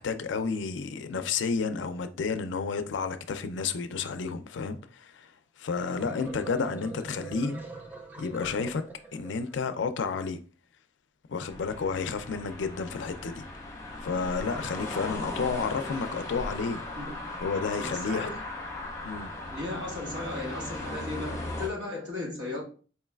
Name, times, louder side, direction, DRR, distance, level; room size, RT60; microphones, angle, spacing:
voice 1, 0.0-5.3 5.6-7.6 8.2-8.8 9.1-10.4 11.3-13.4 14.0-16.8 17.4-18.3 19.0-19.3, left 5 dB, 70° left, 0.4 m, -31 dB
sound 1, 5.7-9.6, right 3 dB, 10° right, 0.4 m, -43 dB
sound 2, 11.5-21.7, left 2 dB, 15° left, 1.0 m, -38 dB
voice 2, 17.0-18.4 19.5-22.6, left 2 dB, 65° right, 1.3 m, -36 dB
4.4 x 3.1 x 2.3 m
head